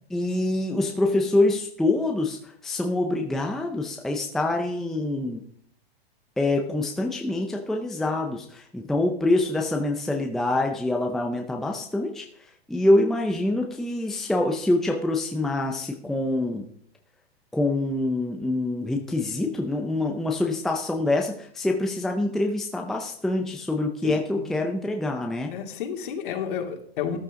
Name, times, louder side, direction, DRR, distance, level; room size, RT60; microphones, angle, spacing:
voice 1, 0.1-5.4 6.4-16.6 17.5-25.5, left 2 dB, ahead, 2 dB, 0.6 m, -25 dB
voice 2, 24.0-24.5 25.5-27.2, left 8 dB, 50° left, 3 dB, 2.8 m, -31 dB
13.5 x 11.5 x 3.7 m, 0.64 s
hypercardioid pair, 155°, 31 cm